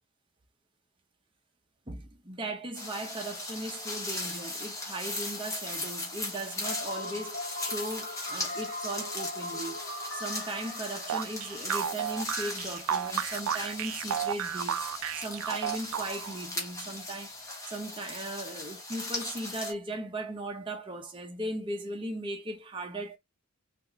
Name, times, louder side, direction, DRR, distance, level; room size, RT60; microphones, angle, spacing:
voice 1, 1.9-9.8 10.1-14.9 15.1-17.3 17.7-23.2, right 1 dB, 25° right, 0.6 m, -38 dB
sound 1, 2.7-19.7, left 2 dB, 15° left, 0.9 m, -38 dB
sound 2, 6.6-12.5, left 1 dB, 55° left, 0.9 m, -40 dB
sound 3, 11.1-16.4, right 9 dB, 80° right, 0.3 m, -32 dB
3.5 x 2.5 x 2.9 m
head